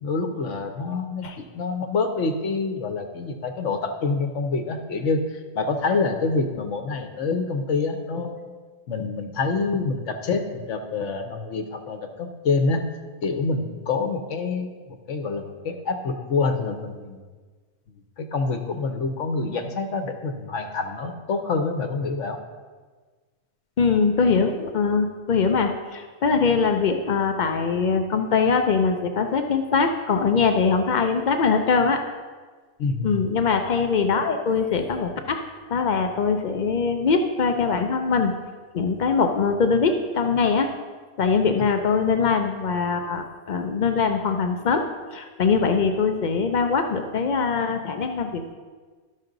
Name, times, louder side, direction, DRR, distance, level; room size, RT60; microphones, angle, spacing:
voice 1, 0.0-8.5 8.9-12.9 13.2-17.2 18.2-22.4 32.8-33.2, left 4 dB, 60° left, 6 dB, 1.0 m, -26 dB
voice 2, 23.8-32.0 33.0-35.4 35.7-38.3 38.7-40.7 41.2-44.9 45.1-48.5, left 5 dB, 85° left, 6 dB, 0.4 m, -22 dB
12.0 x 6.3 x 3.9 m, 1.4 s
omnidirectional pair, 1.6 m